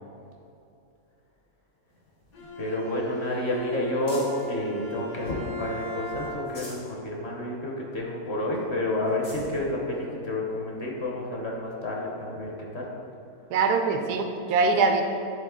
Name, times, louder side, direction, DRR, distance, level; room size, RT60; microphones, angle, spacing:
sound 1, 1.9-4.5 5.1-5.8 6.2-6.9 7.4-7.5 7.8-7.9 8.5-8.6 9.0-9.5 10.3-10.4 12.2-12.3, left 1 dB, 80° left, 2.4 m, -48 dB
Bowed string instrument, 2.3-6.7, right 2 dB, 65° left, 1.6 m, -37 dB
voice 1, 2.6-12.9, left 1 dB, 50° left, -2 dB, 1.1 m, -30 dB
voice 2, 13.5-15.0, right 4 dB, 85° right, 5 dB, 1.2 m, -23 dB
10.5 x 3.7 x 3.7 m, 2.7 s
omnidirectional pair, 1.6 m